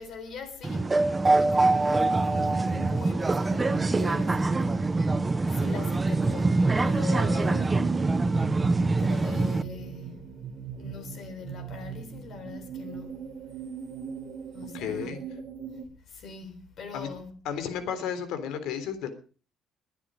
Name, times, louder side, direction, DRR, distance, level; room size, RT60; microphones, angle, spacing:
voice 1, 0.0-5.1 5.5-8.0 8.5-8.6 9.0-10.4 10.8-13.3 14.5-15.2 15.7-15.8 16.1-17.4, left 4 dB, 45° left, 3.9 m, -41 dB
sound 1, 0.6-9.6, right 3 dB, 15° right, 0.6 m, -24 dB
sound 2, 7.2-15.9, right 7 dB, 40° right, 1.5 m, -39 dB
voice 2, 14.7-15.2 16.9-17.1 17.5-19.1, left 8 dB, 80° left, 3.6 m, -32 dB
22.0 x 9.7 x 5.2 m
cardioid pair, 175°, 0 cm